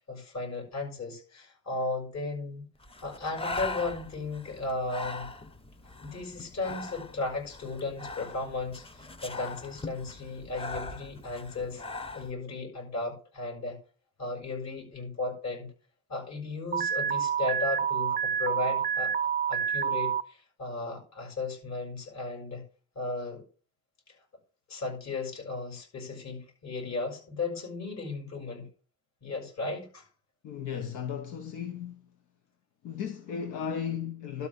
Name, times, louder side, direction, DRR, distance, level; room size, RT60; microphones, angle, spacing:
voice 1, 0.1-2.6 3.0-5.3 6.0-11.8 12.1-13.8 14.2-15.7 16.1-19.1 19.5-22.6 22.9-23.4 24.7-28.7 29.2-30.0, left 3 dB, 65° left, 6.6 m, -35 dB
Breathing, 2.8-12.3, left 2 dB, 20° left, 0.9 m, -40 dB
Alarm, 16.7-20.2, right 8 dB, 30° right, 0.4 m, -28 dB
voice 2, 30.4-32.1 32.8-34.5, left 7 dB, 90° left, 1.1 m, -35 dB
12.0 x 4.2 x 8.2 m
cardioid pair, 90°, 30 cm